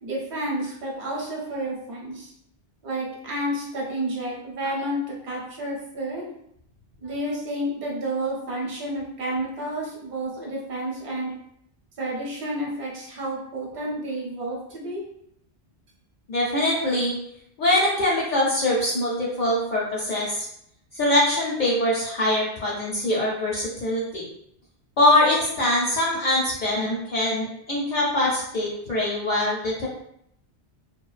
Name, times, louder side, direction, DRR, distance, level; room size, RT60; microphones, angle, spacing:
voice 1, 0.0-2.3 2.8-6.3 7.0-11.3 12.0-15.0, right 1 dB, 45° right, -4 dB, 0.8 m, -30 dB
voice 2, 16.3-17.1 17.6-20.5 20.9-24.3 25.0-29.9, left 1 dB, 55° left, -5 dB, 0.6 m, -23 dB
2.5 x 2.2 x 2.4 m, 0.73 s
omnidirectional pair, 1.2 m